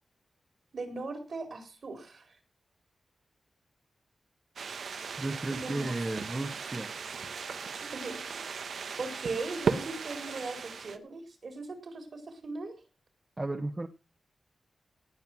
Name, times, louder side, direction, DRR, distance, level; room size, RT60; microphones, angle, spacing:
voice 1, 0.7-2.2 5.5-5.9 7.9-8.4 9.0-12.8, right 3 dB, 55° right, 6 dB, 4.3 m, -39 dB
sound 1, 4.6-11.0, right 5 dB, 80° right, 1.2 m, -36 dB
voice 2, 5.2-7.0 13.4-13.9, right 2 dB, 20° right, 8 dB, 0.9 m, -34 dB
18.0 x 7.7 x 6.1 m, 0.33 s
wide cardioid pair, 135°, 0 cm